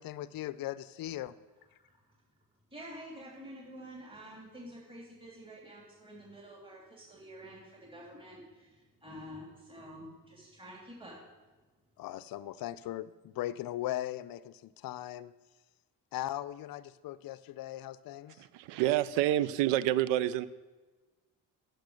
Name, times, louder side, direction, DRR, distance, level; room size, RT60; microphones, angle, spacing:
voice 1, 0.0-1.3 12.0-15.3 16.1-18.4, left 14 dB, 55° left, 17 dB, 0.5 m, -39 dB
voice 2, 2.7-11.2, equal, 10° right, -3 dB, 2.9 m, -48 dB
voice 3, 18.4-20.5, right 13 dB, 90° right, 17 dB, 0.6 m, -28 dB
8.2 x 6.3 x 6.6 m, 1.2 s
supercardioid pair, 75°, 43 cm